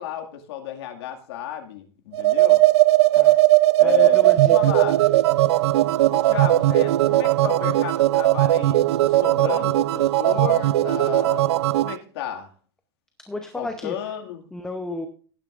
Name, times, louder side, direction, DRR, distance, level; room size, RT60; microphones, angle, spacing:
voice 1, 0.0-2.6 3.8-5.0 6.1-12.5 13.6-14.5, left 10 dB, 75° left, 3 dB, 2.1 m, -32 dB
sound 1, 2.1-12.0, right 16 dB, 85° right, 0.5 m, -18 dB
voice 2, 3.8-4.8 13.2-13.9 14.5-15.1, left 2 dB, 5° left, 6 dB, 0.8 m, -32 dB
18.0 x 9.7 x 2.5 m, 0.42 s
supercardioid pair, 155°, 14 cm